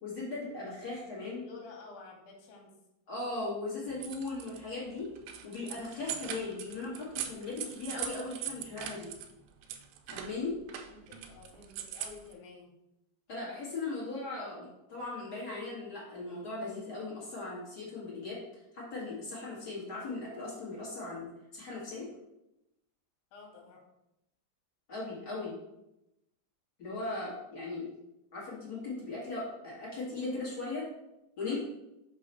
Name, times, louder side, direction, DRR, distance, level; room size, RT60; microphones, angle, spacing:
voice 1, 0.0-1.4 3.1-5.1 5.4-9.1 10.1-10.6 13.3-18.4 18.7-22.1 24.9-25.6 26.8-27.9 28.3-30.9 31.4-31.6, left 3 dB, 40° left, -7 dB, 1.6 m, -38 dB
voice 2, 1.2-2.7 10.9-12.7 23.3-23.8, left 4 dB, 70° left, -1 dB, 2.7 m, -51 dB
sound 1, 3.9-4.6 5.0-9.3 9.6-12.3, right 9 dB, 80° right, 2.2 m, -41 dB
5.6 x 3.0 x 5.4 m, 0.88 s
omnidirectional pair, 4.5 m